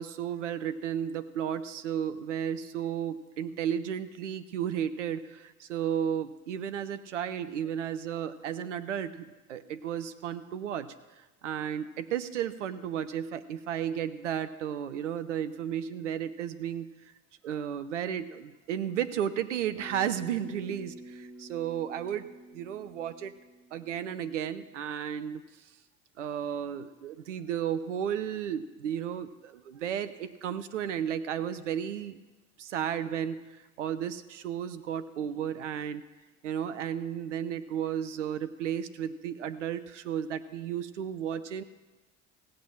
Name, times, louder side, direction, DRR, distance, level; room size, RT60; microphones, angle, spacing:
voice 1, 0.0-17.1 17.4-22.3 22.5-23.3 23.7-25.4 26.2-32.2 32.6-33.4 33.8-36.0 36.4-41.6, right 9 dB, 75° right, 11 dB, 0.7 m, -33 dB
Bass guitar, 19.8-24.1, right 1 dB, 15° right, 2.7 m, -48 dB
16.5 x 8.6 x 5.8 m, 1.1 s
figure-of-eight pair, 60°, 37 cm